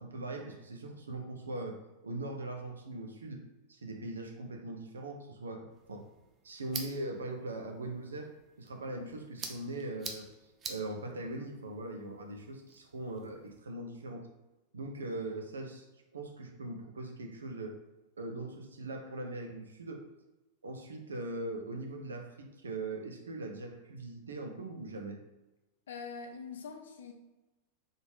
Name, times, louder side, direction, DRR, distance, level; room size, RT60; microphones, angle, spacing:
voice 1, 0.0-3.4 3.7-6.1 6.4-8.3 8.6-10.3 10.6-14.3 14.7-15.9 16.1-17.8 18.2-20.1 20.6-25.2, right 2 dB, 70° right, 3 dB, 0.7 m, -40 dB
sound 1, 5.7-13.6, right 4 dB, 25° right, 0.6 m, -48 dB
voice 2, 25.9-27.1, left 5 dB, 65° left, 4 dB, 0.6 m, -43 dB
4.0 x 3.5 x 3.7 m, 1.0 s
figure-of-eight pair, 90°, 0 cm